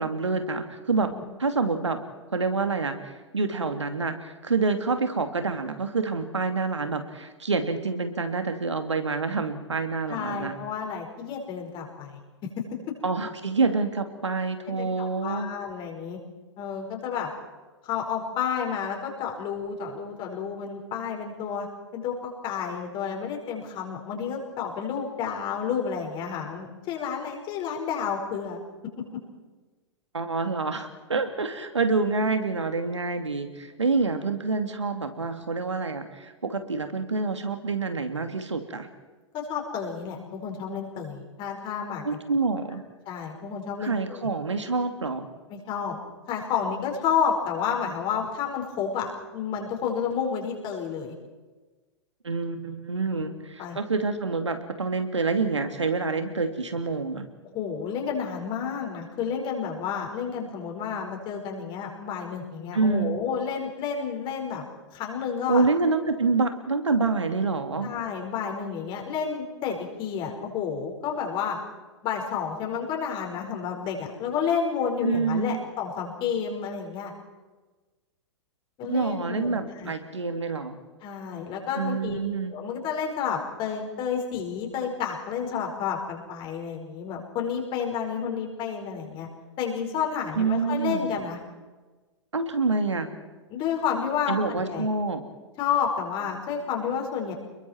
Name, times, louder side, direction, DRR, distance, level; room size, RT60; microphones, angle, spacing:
voice 1, 0.0-1.1 1.4-2.0 2.3-10.5 13.0-15.5 30.1-38.9 42.0-42.8 43.8-45.3 52.2-57.3 62.7-63.2 65.5-67.9 75.0-75.6 78.8-80.8 81.8-82.6 90.3-91.2 92.3-93.1 94.3-95.2, right 4 dB, 75° right, 7 dB, 2.6 m, -27 dB
voice 2, 10.1-12.7 14.7-16.2 16.6-17.3 17.8-21.7 21.9-28.6 39.3-42.2 43.1-44.3 45.5-46.0 46.3-51.1 53.1-53.3 53.6-53.8 57.5-64.6 64.9-65.7 67.8-71.6 72.0-77.1 78.8-79.9 81.0-82.2 82.5-89.3 89.6-91.4 93.5-94.9 95.6-97.3, left 7 dB, 35° left, 1 dB, 5.2 m, -30 dB
30.0 x 22.0 x 4.6 m, 1.3 s
figure-of-eight pair, 105°, 15 cm